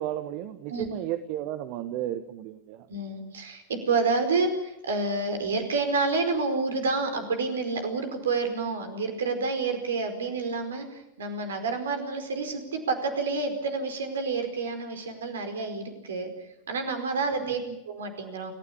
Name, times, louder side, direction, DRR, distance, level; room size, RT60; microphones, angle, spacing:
voice 1, 0.0-2.9 17.4-17.8, right 12 dB, 45° right, 10 dB, 1.5 m, -34 dB
voice 2, 2.9-16.3 16.7-17.6 17.8-18.5, right 4 dB, 65° right, 7 dB, 4.9 m, -29 dB
29.0 x 15.5 x 8.9 m, 0.91 s
figure-of-eight pair, 90°, 0 cm